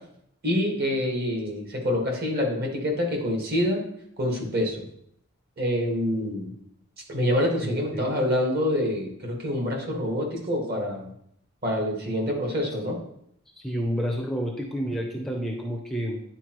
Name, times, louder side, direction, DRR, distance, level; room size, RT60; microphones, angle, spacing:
voice 1, 0.4-3.8 4.2-4.8 5.6-6.5 7.1-11.1 11.6-13.0, left 1 dB, 50° right, 0 dB, 1.6 m, -26 dB
voice 2, 7.6-8.1 13.6-16.2, equal, ahead, 0 dB, 0.6 m, -29 dB
9.9 x 4.4 x 3.0 m, 0.71 s
head